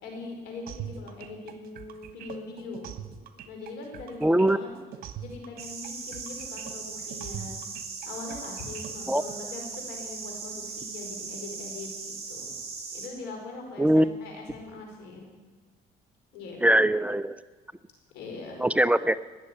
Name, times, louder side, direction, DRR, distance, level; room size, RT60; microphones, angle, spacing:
voice 1, 0.0-2.9 3.4-4.8 5.2-7.6 8.1-12.6 12.9-15.3 16.3-16.6 18.1-18.7, left 3 dB, 90° left, 2 dB, 4.8 m, -41 dB
sound 1, 0.7-9.4, right 9 dB, 60° right, 1.5 m, -42 dB
voice 2, 4.2-4.6 9.1-9.2 13.8-14.1 16.6-17.4 18.6-19.2, right 1 dB, 10° right, 14 dB, 0.4 m, -21 dB
sound 2, 5.6-13.1, right 4 dB, 40° right, 4.1 m, -39 dB
19.5 x 7.6 x 9.7 m, 1.4 s
cardioid pair, 110°, 17 cm